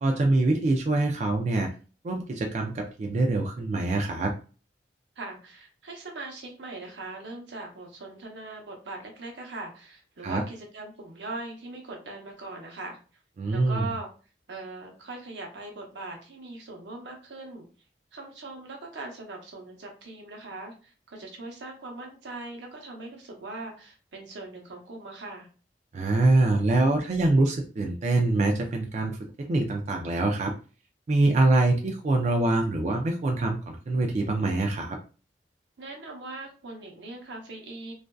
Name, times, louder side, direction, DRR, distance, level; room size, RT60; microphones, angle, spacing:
voice 1, 0.0-1.7 2.0-4.3 10.2-10.4 13.4-13.8 25.9-30.5 31.1-35.0, right 2 dB, 40° right, 2 dB, 0.3 m, -24 dB
voice 2, 5.2-13.0 13.5-14.1 14.5-17.7 18.1-25.5 35.8-37.9, right 2 dB, 90° right, 1 dB, 0.8 m, -40 dB
2.4 x 2.3 x 2.2 m, 0.36 s
head